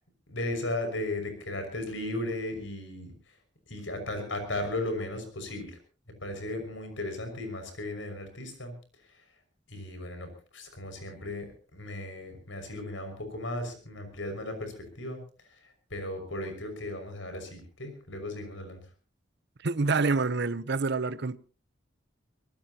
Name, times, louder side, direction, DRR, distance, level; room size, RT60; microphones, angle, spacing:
voice 1, 0.3-3.1 3.7-5.8 6.2-8.7 9.7-15.2 15.6-18.8, left 1 dB, 85° left, 6.0 m, -36 dB
voice 2, 19.6-21.4, right 4 dB, 60° right, 0.8 m, -27 dB
24.0 x 19.0 x 2.9 m
head